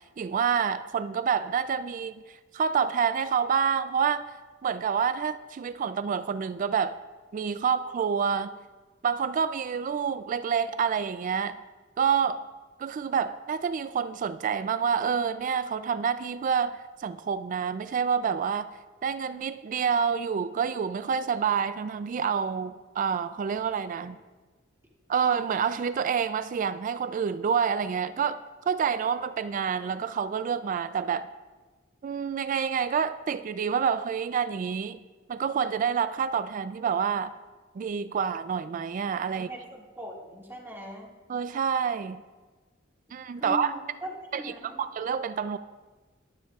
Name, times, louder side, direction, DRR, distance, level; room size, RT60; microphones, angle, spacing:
voice 1, 0.2-4.3 4.6-7.0 7.3-8.5 9.0-11.6 12.0-12.5 12.8-18.7 19.0-24.2 25.1-31.3 32.0-35.0 35.3-37.3 37.8-39.5 41.3-42.2 43.1-43.8 44.3-45.6, right 7 dB, 45° right, 13 dB, 0.3 m, -28 dB
voice 2, 39.3-41.1 43.4-44.8, equal, 10° right, -3 dB, 2.1 m, -40 dB
22.0 x 9.7 x 2.4 m, 1.3 s
head